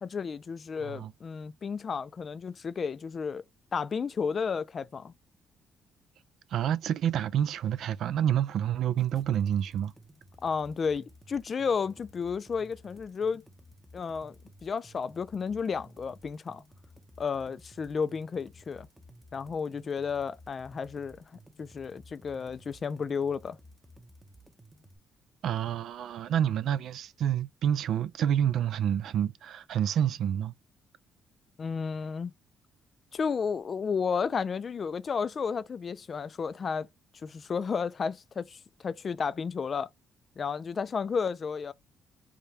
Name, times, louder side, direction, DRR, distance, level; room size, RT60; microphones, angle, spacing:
voice 1, 0.0-3.4 3.7-5.1 10.4-13.4 13.9-14.4 14.6-16.6 17.2-18.9 19.3-21.2 21.6-23.6 31.6-32.3 33.1-36.9 37.2-39.9 40.4-41.7, left 6 dB, 45° left, 0.3 m, -32 dB
voice 2, 0.8-1.1 6.5-9.9 25.4-30.5, right 10 dB, 75° right, 0.3 m, -28 dB
sound 1, 9.0-25.0, equal, 10° right, 0.7 m, -55 dB
4.8 x 2.2 x 2.7 m
cardioid pair, 90°, 0 cm